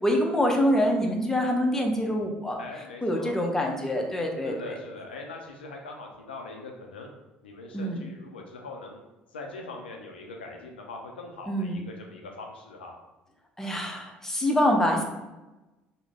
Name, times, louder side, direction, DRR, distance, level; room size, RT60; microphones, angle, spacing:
voice 1, 0.0-2.6 3.0-4.7 7.7-8.0 11.5-11.8 13.6-15.0, equal, 10° left, 1 dB, 0.6 m, -25 dB
voice 2, 2.6-3.4 4.4-7.1 7.4-9.0 9.3-13.0, left 3 dB, 80° left, 2 dB, 0.4 m, -41 dB
3.1 x 2.0 x 3.5 m, 1.1 s
figure-of-eight pair, 55°, 5 cm